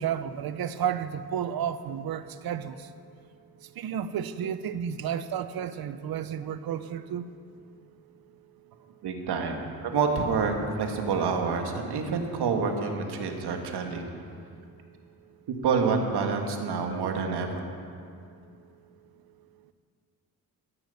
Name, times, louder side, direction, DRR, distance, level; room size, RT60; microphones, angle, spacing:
voice 1, 0.0-2.9 3.8-7.3, right 9 dB, 70° right, 12 dB, 0.7 m, -32 dB
voice 2, 9.0-14.1 15.6-17.5, right 5 dB, 90° right, 4 dB, 1.7 m, -27 dB
14.0 x 9.4 x 6.9 m, 2.5 s
cardioid pair, 130°, 38 cm